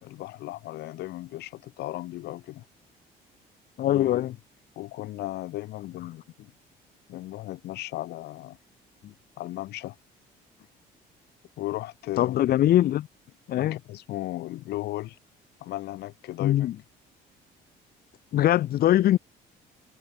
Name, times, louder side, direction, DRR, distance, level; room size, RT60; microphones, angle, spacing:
voice 1, 0.0-2.6 3.8-4.3 4.7-6.5 7.1-8.6 9.4-10.0 11.6-12.4 13.6-15.2 15.6-16.8, left 16 dB, 80° left, 3.4 m, -36 dB
voice 2, 3.8-4.3 12.2-13.1 13.5-13.8 16.4-16.7 18.3-19.2, left 13 dB, 65° left, 1.5 m, -22 dB
cardioid pair, 110°, 17 cm